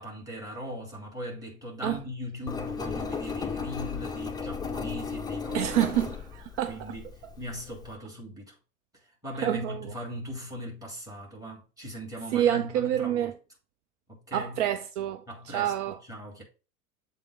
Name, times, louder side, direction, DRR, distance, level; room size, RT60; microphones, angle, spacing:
voice 1, 0.0-5.7 6.7-7.1 7.4-8.6 8.9-13.3 14.1-14.6 15.3-15.7 16.1-16.4, equal, 10° right, 2.9 m, -39 dB
Engine, 2.5-7.9, left 5 dB, 10° left, 0.5 m, -35 dB
voice 2, 5.5-7.0 9.4-9.9 12.3-13.3 14.3-16.0, right 11 dB, 55° right, 0.5 m, -28 dB
7.5 x 2.8 x 4.9 m
figure-of-eight pair, 85°, 43 cm